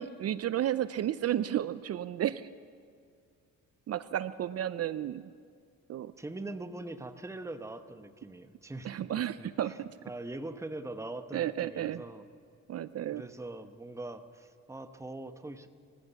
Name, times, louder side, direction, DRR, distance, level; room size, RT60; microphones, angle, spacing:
voice 1, 0.0-2.5 3.9-5.3 5.9-6.1 8.8-10.0 11.3-12.0 12.7-13.2, right 11 dB, 55° right, 15 dB, 0.5 m, -32 dB
voice 2, 6.2-9.8 10.0-12.3 13.1-15.7, right 2 dB, 10° right, 9 dB, 1.1 m, -42 dB
25.0 x 15.0 x 7.0 m, 2.3 s
cardioid pair, 90°, 30 cm